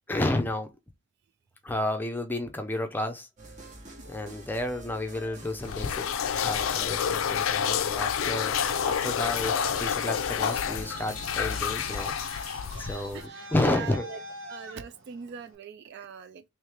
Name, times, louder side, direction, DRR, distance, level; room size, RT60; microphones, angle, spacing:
voice 1, 0.1-0.7 1.6-3.3 4.1-8.6 8.8-12.1 12.7-14.0, left 1 dB, 10° left, 0.5 m, -31 dB
sound 1, 3.4-12.1, right 1 dB, 40° right, 0.9 m, -47 dB
sound 2, 5.6-13.3, left 8 dB, 85° left, 0.4 m, -29 dB
Traffic noise roadway noise, 7.9-15.6, right 1 dB, 80° right, 1.2 m, -43 dB
voice 2, 12.6-16.4, right 6 dB, 55° right, 0.3 m, -42 dB
3.1 x 3.1 x 3.4 m
head